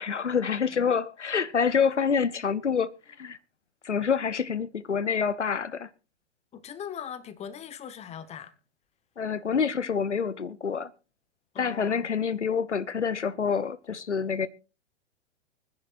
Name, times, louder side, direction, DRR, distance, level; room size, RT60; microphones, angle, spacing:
voice 1, 0.0-2.9 3.2-3.4 3.8-5.9 9.2-10.9 11.6-14.5, left 6 dB, 90° left, 0.7 m, -27 dB
voice 2, 6.5-8.5 11.5-12.1, left 8 dB, 20° left, 1.1 m, -40 dB
24.5 x 10.5 x 2.5 m
figure-of-eight pair, 105°, 34 cm